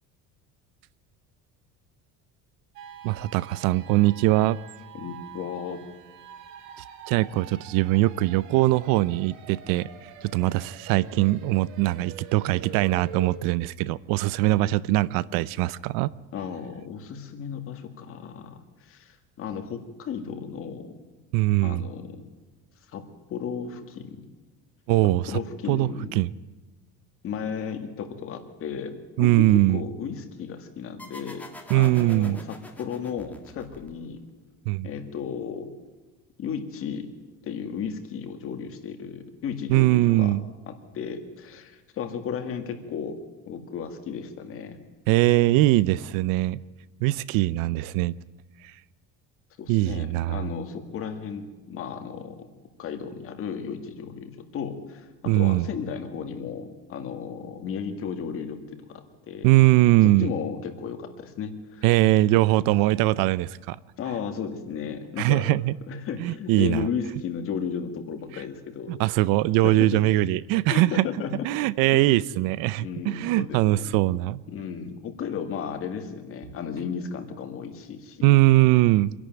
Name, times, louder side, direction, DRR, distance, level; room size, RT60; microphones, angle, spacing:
sound 1, 2.8-13.4, right 8 dB, 55° right, 2.2 m, -45 dB
voice 1, 3.0-4.6 7.1-9.9 10.2-16.1 21.3-21.9 24.9-25.4 25.7-26.3 29.2-29.8 31.7-32.4 34.7-34.9 39.7-40.4 45.1-46.6 47.0-48.1 49.7-50.5 55.3-55.7 59.4-60.3 61.8-63.8 65.2-65.7 66.2-66.9 68.9-71.1 71.4-74.4 78.2-79.1, right 17 dB, 75° right, 20 dB, 0.6 m, -21 dB
voice 2, 4.9-5.8 16.3-20.9 21.6-22.2 22.9-23.0 23.3-24.2 25.3-26.1 27.2-31.5 31.7-34.2 34.8-35.7 36.4-37.1 37.4-40.3 40.7-43.2 43.5-44.8 49.6-52.4 52.8-59.5 60.0-61.8 64.0-65.5 65.9-69.0 69.6-70.1 70.7-71.5 71.9-72.2 72.8-73.9 74.5-78.2, left 7 dB, 40° left, 7 dB, 2.0 m, -34 dB
sound 2, 31.0-34.3, left 1 dB, 5° left, 1.7 m, -46 dB
25.0 x 11.5 x 9.1 m, 1.2 s
cardioid pair, 170°, 34 cm